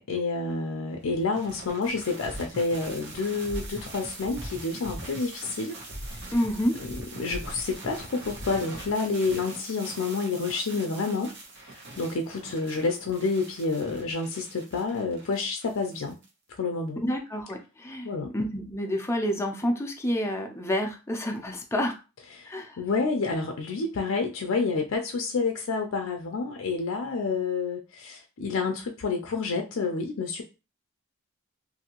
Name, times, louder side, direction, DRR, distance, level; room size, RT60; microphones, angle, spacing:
voice 1, 0.0-5.8 6.1-6.2 6.8-6.9 7.2-11.3 11.7-16.2 16.6-17.0 18.0-18.3 22.4-30.4, left 4 dB, 80° left, 3 dB, 0.4 m, -29 dB
sound 1, 1.0-16.3, right 1 dB, 60° right, 0.9 m, -42 dB
voice 2, 6.3-6.8 17.0-18.1 18.3-21.9 22.5-22.8, equal, 15° left, 2 dB, 0.5 m, -28 dB
2.7 x 2.5 x 2.9 m, 0.30 s
head